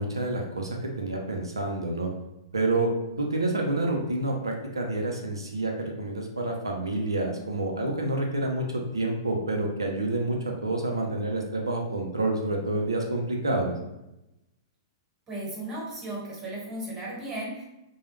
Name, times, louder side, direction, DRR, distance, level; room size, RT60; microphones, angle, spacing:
voice 1, 0.0-2.1 2.5-2.9 3.2-13.8, right 2 dB, 90° right, 1 dB, 0.5 m, -28 dB
voice 2, 15.3-17.6, right 1 dB, 25° right, -4 dB, 1.2 m, -35 dB
2.2 x 2.0 x 3.1 m, 0.92 s
hypercardioid pair, 110°, 2 cm